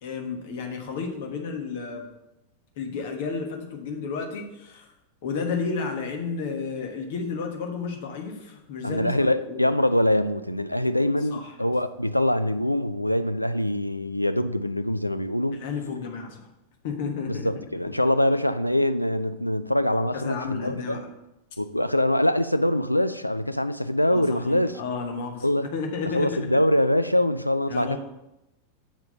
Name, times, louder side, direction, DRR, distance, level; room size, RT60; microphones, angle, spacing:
voice 1, 0.0-2.1 2.8-4.9 5.2-9.6 11.3-11.5 15.5-16.5 16.8-17.5 20.1-21.1 24.1-26.6 27.7-28.0, left 5 dB, 50° left, 3 dB, 1.2 m, -32 dB
voice 2, 8.8-15.6 17.3-21.0 21.6-24.8 25.4-25.7 26.1-28.0, left 1 dB, 90° left, 11 dB, 0.3 m, -24 dB
7.3 x 4.8 x 5.3 m, 0.89 s
figure-of-eight pair, 90°, 0 cm